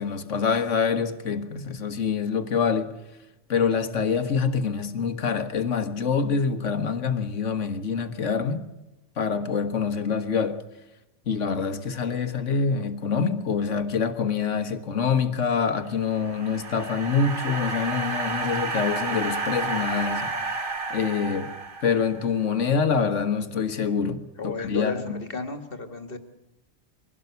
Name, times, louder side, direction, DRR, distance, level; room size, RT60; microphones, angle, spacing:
voice 1, 0.0-3.0 3.5-8.7 9.2-10.6 11.3-20.4 20.9-21.5 21.8-25.2, left 6 dB, 90° left, 1.8 m, -26 dB
sound 1, 15.9-22.3, right 3 dB, 45° right, 2.0 m, -31 dB
voice 2, 24.4-26.2, left 3 dB, 50° left, 2.1 m, -33 dB
22.5 x 16.5 x 8.2 m
omnidirectional pair, 1.2 m